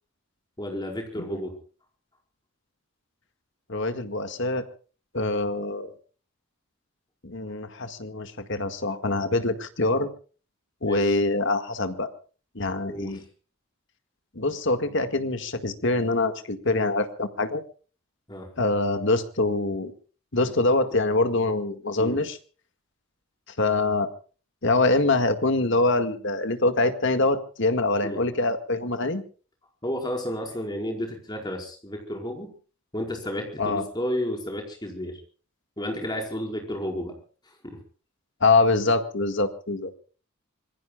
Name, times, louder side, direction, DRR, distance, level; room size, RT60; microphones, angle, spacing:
voice 1, 0.6-1.5 10.8-11.1 12.9-13.2 18.3-18.5 22.0-22.2 28.0-28.2 29.8-32.5 32.9-35.2 35.8-37.2 37.6-37.8, equal, 20° left, 2 dB, 4.9 m, -32 dB
voice 2, 3.7-4.6 5.1-5.9 7.2-10.1 10.8-12.1 12.6-13.2 14.4-17.6 18.6-19.9 20.3-22.4 23.6-24.1 24.6-29.2 33.6-33.8 38.4-40.0, left 2 dB, 55° left, 8 dB, 1.9 m, -24 dB
26.5 x 21.5 x 2.4 m, 0.39 s
head